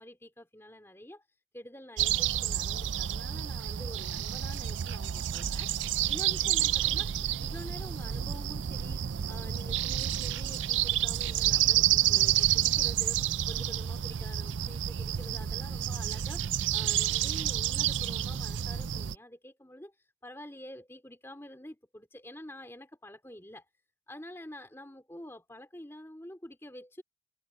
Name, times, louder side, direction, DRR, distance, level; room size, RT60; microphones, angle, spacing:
voice 1, 0.0-23.6 24.1-27.0, left 1 dB, 15° left, 2.7 m, -48 dB
sound 1, 2.0-19.1, right 11 dB, 75° right, 0.5 m, -29 dB
head